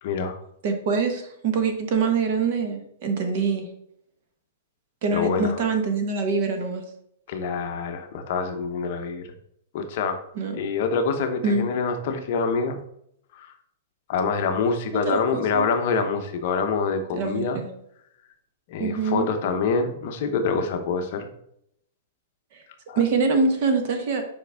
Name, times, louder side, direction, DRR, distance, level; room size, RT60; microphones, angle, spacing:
voice 1, 0.0-0.4 5.1-5.6 7.3-9.2 9.7-10.2 10.5-12.8 13.3-13.5 14.1-17.6 18.7-21.3 22.9-23.0, left 5 dB, 40° left, 6 dB, 0.8 m, -26 dB
voice 2, 0.6-3.7 5.0-6.8 10.4-10.6 11.4-11.6 15.0-15.7 17.1-17.7 18.8-19.2 22.5-22.6 23.0-24.2, right 4 dB, 40° right, 5 dB, 1.1 m, -24 dB
7.5 x 5.1 x 3.4 m, 0.72 s
supercardioid pair, 175°, 0 cm